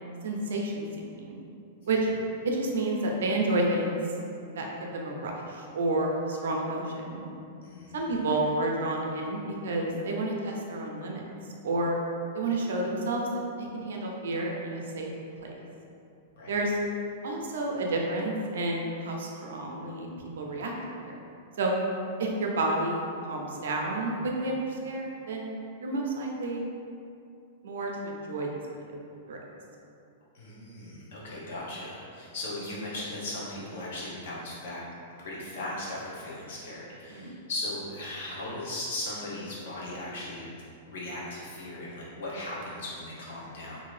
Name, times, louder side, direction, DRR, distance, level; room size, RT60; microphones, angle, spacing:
voice 1, 0.2-0.8 1.1-1.4 1.9-2.1 2.4-4.0 4.5-7.2 7.9-11.2 11.6-12.0 12.3-13.2 13.6-15.1 15.4-15.6 16.5-16.8 17.2-20.1 20.4-20.7 21.0-21.1 21.6-21.7 22.2-23.0 23.3-25.5 25.8-26.7 27.6-28.5 28.8-28.9 29.3-29.4 37.1-37.3, right 2 dB, 85° right, 0 dB, 0.5 m, -30 dB
voice 2, 7.6-8.1 16.3-16.5 30.3-34.8 35.2-40.5 40.9-43.8, left 1 dB, 55° left, -6 dB, 0.9 m, -38 dB
2.7 x 2.6 x 3.2 m, 2.6 s
supercardioid pair, 175°, 0 cm